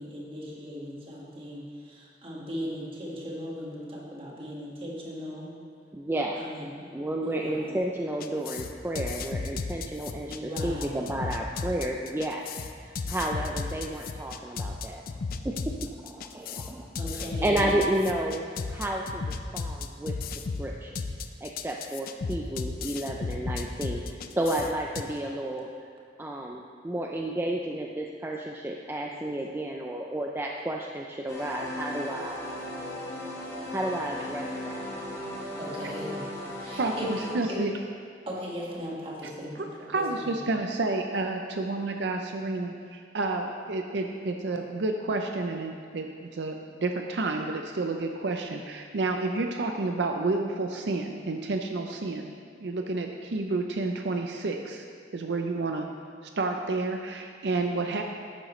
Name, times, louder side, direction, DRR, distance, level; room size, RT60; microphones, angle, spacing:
voice 1, 0.0-5.5 6.4-7.8 10.3-11.1 17.0-17.7 35.6-36.3 36.6-37.6 38.3-40.4, equal, 30° right, -4 dB, 1.8 m, -38 dB
voice 2, 5.9-6.4 6.9-12.4 12.8-15.0 15.4-18.4 18.7-20.1 20.6-21.0 21.4-24.0 24.4-25.7 26.2-32.4 33.7-34.8, right 1 dB, 15° right, 0 dB, 0.4 m, -32 dB
sound 1, 8.2-25.0, left 4 dB, 55° left, 0.4 m, -34 dB
sound 2, 31.3-37.3, left 1 dB, 20° left, 2.2 m, -37 dB
voice 3, 36.8-37.7 39.9-52.3 52.6-54.8 55.1-55.9 56.2-58.0, right 3 dB, 70° right, 4 dB, 0.5 m, -30 dB
11.5 x 8.8 x 3.2 m, 2.2 s
head